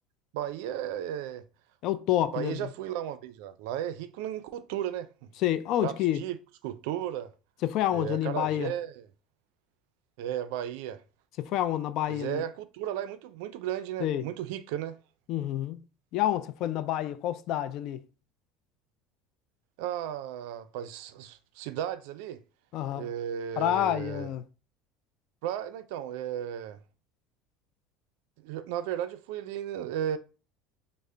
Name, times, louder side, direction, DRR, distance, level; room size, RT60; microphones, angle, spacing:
voice 1, 0.3-1.4 2.3-5.3 5.8-6.4 6.6-7.3 7.9-9.0 10.2-11.0 12.1-15.0 19.8-22.4 22.9-24.3 25.4-26.8 28.4-30.2, right 11 dB, 80° right, 0.3 m, -35 dB
voice 2, 1.8-2.7 5.4-6.2 7.6-8.7 11.4-12.4 14.0-14.3 15.3-15.8 16.1-18.0 22.7-23.1 23.6-24.4, left 12 dB, 60° left, 0.3 m, -28 dB
3.2 x 2.0 x 3.7 m
supercardioid pair, 105°, 0 cm